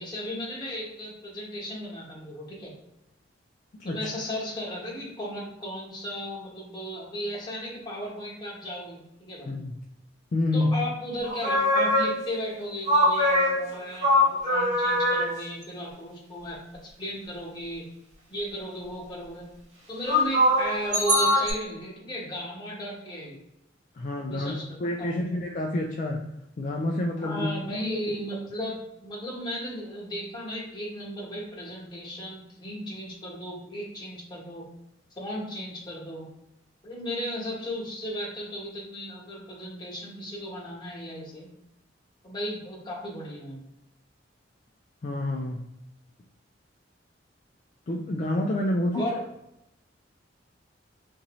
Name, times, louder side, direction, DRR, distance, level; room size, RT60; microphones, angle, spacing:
voice 1, 0.0-2.7 3.8-9.5 10.5-17.9 18.3-19.5 19.9-23.4 24.2-25.3 27.2-34.6 35.2-36.3 36.8-41.5 42.2-43.6 48.9-49.2, equal, 25° left, -5 dB, 1.2 m, -35 dB
voice 2, 10.3-10.7 24.0-24.5 24.8-26.2 26.6-27.5 45.0-45.6 47.9-49.1, left 1 dB, 45° left, 0 dB, 0.4 m, -28 dB
sound 1, 11.2-12.4 12.9-15.4 20.1-21.5, left 1 dB, 40° right, 1.0 m, -22 dB
4.1 x 2.6 x 3.0 m, 0.89 s
head